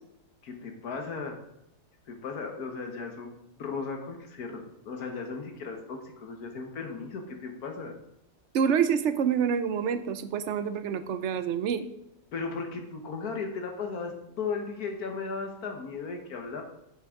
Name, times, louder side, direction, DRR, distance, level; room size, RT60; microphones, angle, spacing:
voice 1, 0.4-1.4 2.1-7.9 12.3-16.6, left 4 dB, 70° left, 3 dB, 1.6 m, -36 dB
voice 2, 8.5-11.9, right 7 dB, 60° right, 12 dB, 0.8 m, -27 dB
9.8 x 7.7 x 3.6 m, 0.82 s
omnidirectional pair, 1.7 m